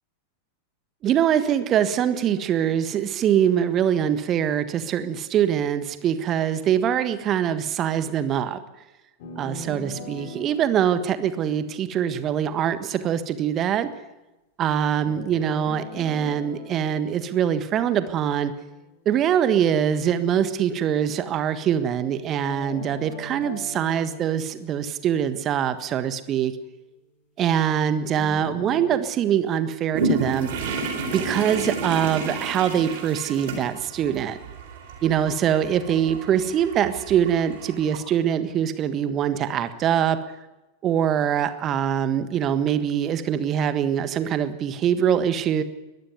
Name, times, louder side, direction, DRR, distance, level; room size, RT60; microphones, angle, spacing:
voice 1, 1.0-8.6 9.4-13.9 14.6-18.5 19.0-26.5 27.4-30.5 31.1-34.4 35.0-40.2 40.8-45.6, right 9 dB, 30° right, 11 dB, 1.5 m, -23 dB
sound 1, 9.2-12.3 15.0-18.3 22.4-25.5 28.2-29.0, left 1 dB, 50° left, 4.9 m, -40 dB
sound 2, 29.9-38.0, right 3 dB, 55° right, 4.2 m, -31 dB
22.0 x 14.0 x 9.6 m, 1.1 s
figure-of-eight pair, 90°, 0 cm